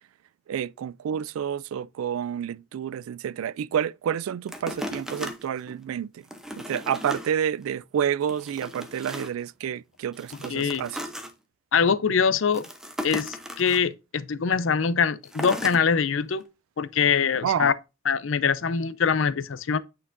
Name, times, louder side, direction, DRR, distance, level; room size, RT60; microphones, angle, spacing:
voice 1, 0.5-6.2 6.5-11.0 17.4-17.7, right 8 dB, 85° right, 0.3 m, -29 dB
sound 1, 4.5-5.8 6.2-7.3 7.7-7.8 8.2-9.5 10.1-11.3 12.5-13.8 15.3-15.8 16.4-16.5, equal, 5° right, 0.7 m, -36 dB
voice 2, 10.5-10.9 11.7-12.6 13.0-16.4 16.8-17.7 18.1-19.8, left 6 dB, 65° left, 0.5 m, -23 dB
8.5 x 4.4 x 2.6 m
head